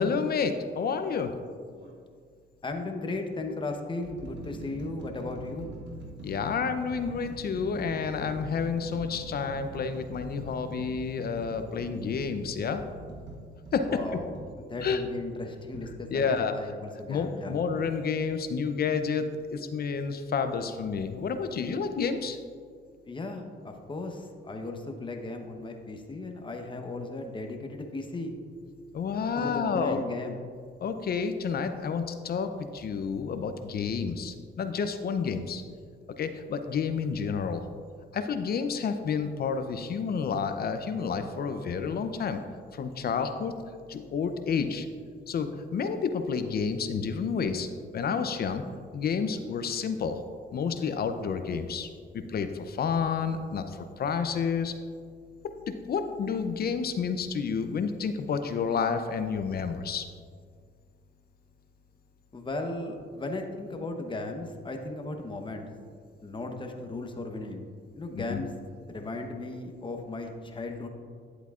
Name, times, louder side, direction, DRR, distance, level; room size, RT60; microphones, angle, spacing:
voice 1, 0.0-1.3 6.2-12.8 13.7-14.0 14.8-15.0 16.1-16.5 17.1-22.4 28.9-30.0 30.8-35.6 36.2-37.6 38.1-42.4 42.7-43.5 43.9-44.9 45.3-47.7 47.9-48.6 48.9-50.2 50.5-51.9 52.3-54.7 55.7-60.1 68.1-68.4, left 6 dB, 50° left, 8 dB, 0.6 m, -30 dB
sound 1, 1.7-2.0 2.9-3.0 3.7-15.0 15.7-15.9, right 2 dB, 65° right, 1.4 m, -43 dB
voice 2, 2.6-5.7 13.9-17.5 23.0-28.3 29.3-30.4 62.3-65.7 66.2-67.7 68.0-68.5 68.9-70.9, left 2 dB, 25° left, 4 dB, 1.0 m, -36 dB
10.5 x 8.0 x 2.4 m, 2.1 s
cardioid pair, 90°, 20 cm